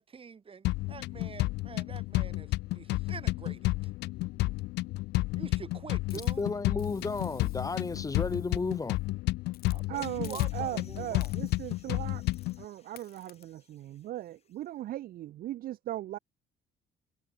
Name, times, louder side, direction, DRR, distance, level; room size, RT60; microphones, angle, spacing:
voice 1, 0.0-3.7 5.3-6.4 9.7-11.3, right 6 dB, 35° right, 4.2 m, -46 dB
sound 1, 0.6-12.6, left 20 dB, 85° left, 0.9 m, -31 dB
Hiss, 6.1-9.0 9.5-9.8 10.2-10.9 11.2-11.7 12.3-12.6 13.0-13.4, left 13 dB, 65° left, 2.6 m, -53 dB
voice 2, 6.4-9.0, left 3 dB, 20° left, 1.9 m, -33 dB
sound 2, 9.9-14.7, left 6 dB, 35° left, 6.2 m, -61 dB
voice 3, 9.9-12.2 12.6-16.2, right 14 dB, 60° right, 0.6 m, -38 dB
cardioid pair, 110°, 17 cm